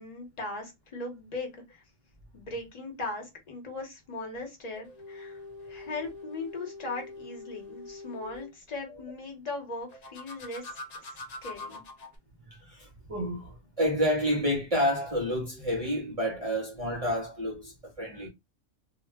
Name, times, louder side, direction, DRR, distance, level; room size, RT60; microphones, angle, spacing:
voice 1, 0.0-1.8 2.3-11.8, left 2 dB, 40° left, 0.8 m, -39 dB
sound 1, 4.7-8.5 9.9-12.2, left 2 dB, 65° left, 0.4 m, -44 dB
voice 2, 12.5-18.3, equal, 50° right, 0.4 m, -29 dB
2.2 x 2.1 x 3.3 m
omnidirectional pair, 1.3 m